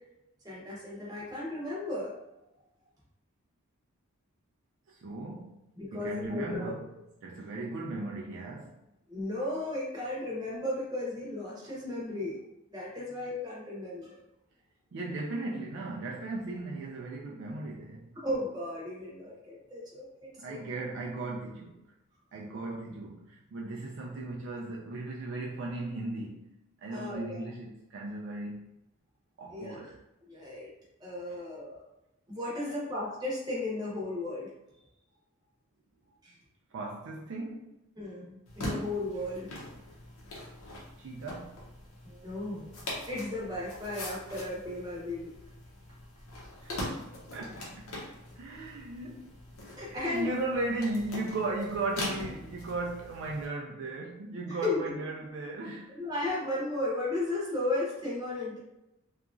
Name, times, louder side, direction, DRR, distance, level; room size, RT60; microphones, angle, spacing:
voice 1, 0.4-2.1 5.8-6.7 9.1-12.4 12.7-14.2 18.1-20.6 26.9-27.4 29.5-29.9 30.3-30.7 31.0-31.8 32.3-34.5 36.2-36.4 38.0-39.5 42.0-42.7 43.1-45.3 49.8-50.3 54.5-54.8 55.9-58.6, left 2 dB, 20° right, -6 dB, 0.7 m, -35 dB
voice 2, 4.9-5.6 5.9-6.9 7.2-8.8 14.9-18.2 20.4-21.8 22.3-26.5 26.8-28.7 29.4-30.0 31.3-31.4 36.7-37.7 41.0-41.6 46.6-48.0 48.4-49.4 49.9-56.0, right 2 dB, 55° right, -2 dB, 0.3 m, -37 dB
sound 1, 38.5-53.5, left 1 dB, 75° left, 0.8 m, -42 dB
2.8 x 2.4 x 2.4 m, 0.90 s
head